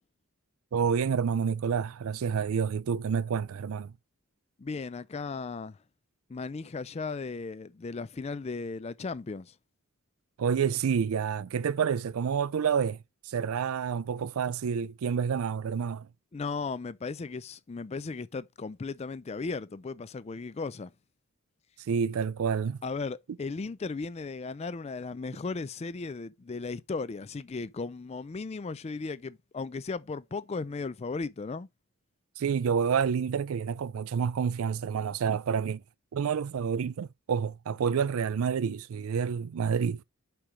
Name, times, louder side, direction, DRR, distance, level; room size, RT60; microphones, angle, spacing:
voice 1, 0.7-3.9 10.4-13.0 13.2-16.1 21.9-22.8 32.4-35.8 36.1-40.0, right 6 dB, 75° right, 0.4 m, -28 dB
voice 2, 4.6-5.8 6.3-9.5 16.3-20.9 22.8-31.7, left 4 dB, 30° left, 0.3 m, -36 dB
5.0 x 4.5 x 4.9 m
head